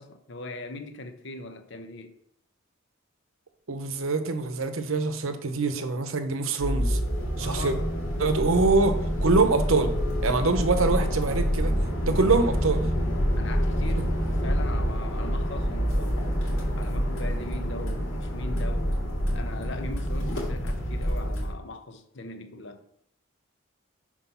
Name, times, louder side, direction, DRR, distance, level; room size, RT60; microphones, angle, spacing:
voice 1, 0.0-2.1 7.4-7.9 12.1-12.6 13.3-16.2 16.7-22.8, left 2 dB, 60° left, 0.8 m, -40 dB
voice 2, 3.7-7.0 7.4-7.7 8.2-9.0 9.2-9.9 10.2-11.7 12.0-12.8, right 3 dB, 75° right, 0.8 m, -24 dB
sound 1, 6.6-21.5, equal, 80° left, 2.5 m, -27 dB
6.1 x 4.4 x 5.6 m
head